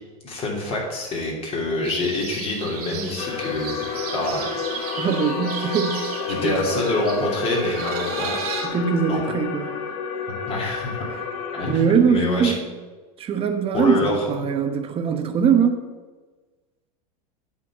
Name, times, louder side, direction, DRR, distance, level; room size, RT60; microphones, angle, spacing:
voice 1, 0.2-3.8 4.1-4.4 6.3-8.4 9.1-9.2 10.3-11.0 11.5-12.5 13.7-14.3, left 2 dB, 30° left, -2 dB, 3.0 m, -26 dB
sound 1, 1.8-8.7, right 6 dB, 85° right, 2.5 m, -34 dB
sound 2, 3.2-11.7, left 6 dB, 70° left, 1.2 m, -30 dB
voice 2, 5.0-6.5 8.6-9.7 11.7-12.7 13.2-15.8, right 7 dB, 30° right, 5 dB, 1.2 m, -22 dB
8.9 x 4.5 x 7.3 m, 1.3 s
supercardioid pair, 130°, 19 cm